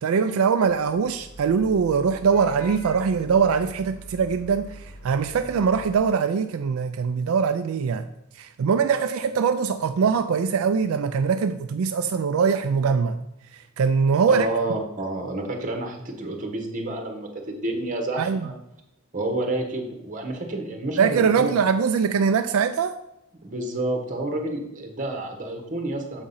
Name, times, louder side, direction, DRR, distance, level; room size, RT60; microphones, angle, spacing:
voice 1, 0.0-8.0 8.3-13.2 13.5-14.5 18.2-18.5 21.0-22.9, right 6 dB, 80° right, 9 dB, 0.4 m, -22 dB
Vehicle horn car horn honking / Traffic noise roadway noise, 0.6-5.9, equal, 80° left, 1.8 m, -43 dB
voice 2, 14.3-18.5 19.1-21.6 23.4-26.2, right 2 dB, 40° right, 2 dB, 1.3 m, -29 dB
7.2 x 3.8 x 5.5 m, 0.84 s
head